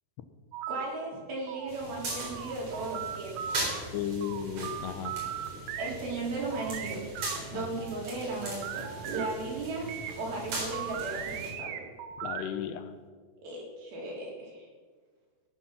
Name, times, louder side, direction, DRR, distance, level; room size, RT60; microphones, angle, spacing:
sound 1, 0.5-0.9 1.3-3.8 4.2-5.9 6.3-9.3 9.9-12.6, right 10 dB, 85° right, 2.9 m, -39 dB
voice 1, 0.7-3.4 5.8-7.1 7.5-9.9 10.2-11.8 13.4-14.7, right 2 dB, 60° right, -4 dB, 5.4 m, -36 dB
sound 2, 1.7-11.5, right 2 dB, 45° right, 5.0 m, -39 dB
voice 2, 3.9-5.1 7.5-7.7 12.2-12.9, left 9 dB, 85° left, 10 dB, 3.0 m, -34 dB
17.5 x 9.9 x 6.0 m, 1.5 s
omnidirectional pair, 4.9 m